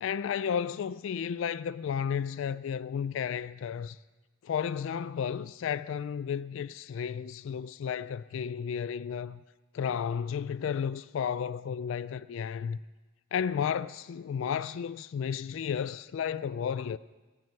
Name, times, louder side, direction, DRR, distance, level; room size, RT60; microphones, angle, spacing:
voice 1, 0.0-4.0 4.4-9.4 9.7-12.8 13.3-17.0, left 7 dB, 65° left, 0.3 m, -33 dB
15.0 x 6.2 x 9.1 m
head